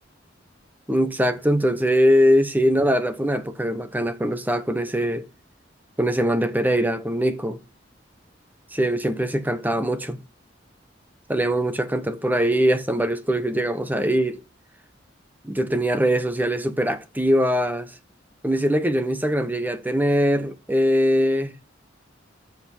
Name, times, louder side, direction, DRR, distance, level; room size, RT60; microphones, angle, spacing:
voice 1, 0.9-5.3 6.0-7.6 8.7-10.2 11.3-14.4 15.4-17.9 18.4-21.5, equal, 10° right, 1.1 m, -22 dB
14.0 x 5.2 x 5.4 m
head